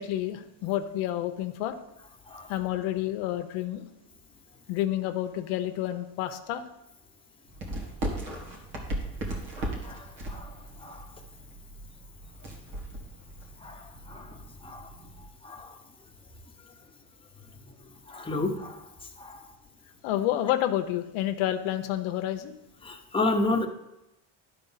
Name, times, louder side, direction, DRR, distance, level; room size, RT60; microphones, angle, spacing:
voice 1, 0.0-1.7 2.5-3.9 4.7-6.6 20.0-22.6, left 12 dB, 80° left, 7 dB, 0.9 m, -29 dB
sound 1, 7.5-15.3, right 1 dB, 70° right, 2.3 m, -38 dB
voice 2, 13.6-14.3 14.6-14.9 15.4-15.7 18.1-18.8 19.2-19.4 22.8-23.7, left 2 dB, 10° left, 1 dB, 1.0 m, -30 dB
10.5 x 4.4 x 5.6 m, 0.91 s
cardioid pair, 105°, 49 cm